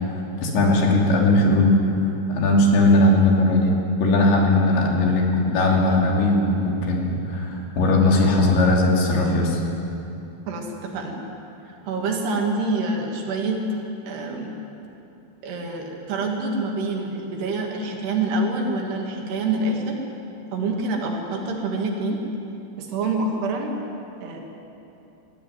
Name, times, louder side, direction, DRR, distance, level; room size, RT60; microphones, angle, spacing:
voice 1, 0.4-1.7 2.3-3.8 4.0-9.6, left 2 dB, 85° left, -1 dB, 5.3 m, -18 dB
voice 2, 10.5-11.2 11.8-13.6 14.1-14.5 15.4-20.0 20.5-22.2 22.8-23.8 24.2-24.4, right 3 dB, 70° right, 1 dB, 4.3 m, -26 dB
22.5 x 16.0 x 9.4 m, 2.9 s
omnidirectional pair, 5.0 m